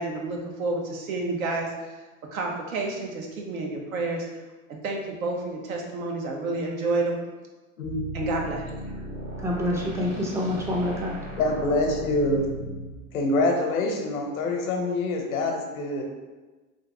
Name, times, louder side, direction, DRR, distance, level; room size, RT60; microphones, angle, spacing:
voice 1, 0.0-1.7 2.3-4.2 4.7-7.2 8.1-9.0, right 3 dB, 85° right, 1 dB, 0.8 m, -29 dB
voice 2, 7.8-8.4 11.4-12.5 13.1-16.0, left 2 dB, 85° left, 2 dB, 0.8 m, -25 dB
sound 1, 7.8-12.9, equal, 65° right, 1.5 m, -36 dB
voice 3, 9.4-11.3, left 1 dB, 10° right, -1 dB, 0.3 m, -27 dB
3.1 x 2.5 x 3.2 m, 1.2 s
hypercardioid pair, 100°, 41 cm